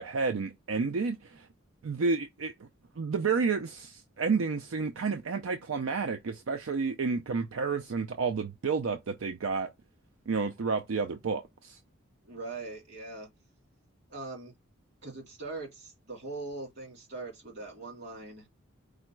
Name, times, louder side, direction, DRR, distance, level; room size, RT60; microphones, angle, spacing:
voice 1, 0.0-1.5 1.8-2.5 3.0-9.7 10.3-11.8, right 4 dB, 90° right, 0.5 m, -30 dB
voice 2, 12.2-13.3 14.1-14.5 15.0-18.5, right 3 dB, 55° right, 2.7 m, -41 dB
4.9 x 2.2 x 4.4 m
head